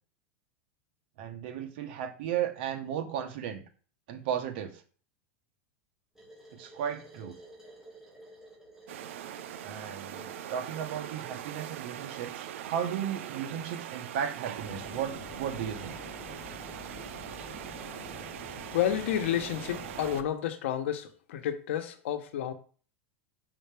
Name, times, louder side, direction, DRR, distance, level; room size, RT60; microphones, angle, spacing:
voice 1, 1.2-3.6 4.1-4.8 6.5-7.3 9.6-16.0, right 9 dB, 55° right, 6 dB, 1.1 m, -35 dB
sound 1, 6.2-13.3, right 1 dB, 5° right, 3.1 m, -53 dB
sound 2, 8.9-20.2, right 11 dB, 80° right, 0.5 m, -42 dB
sound 3, 14.6-20.3, left 6 dB, 25° left, 0.6 m, -48 dB
voice 2, 18.7-22.5, left 10 dB, 75° left, 8 dB, 1.0 m, -30 dB
5.7 x 5.5 x 3.4 m, 0.41 s
supercardioid pair, 165°, 7 cm